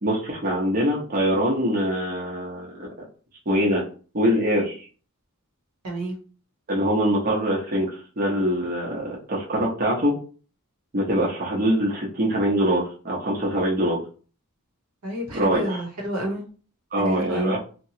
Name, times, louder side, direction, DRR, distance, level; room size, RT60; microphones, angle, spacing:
voice 1, 0.0-2.9 3.5-3.8 4.1-4.9 6.7-10.2 10.9-14.0 15.3-15.8 16.9-17.6, equal, 40° right, -3 dB, 0.8 m, -23 dB
voice 2, 5.8-6.2 15.0-16.4 17.0-17.6, right 1 dB, 80° right, 0 dB, 1.0 m, -29 dB
2.9 x 2.3 x 2.8 m, 0.38 s
head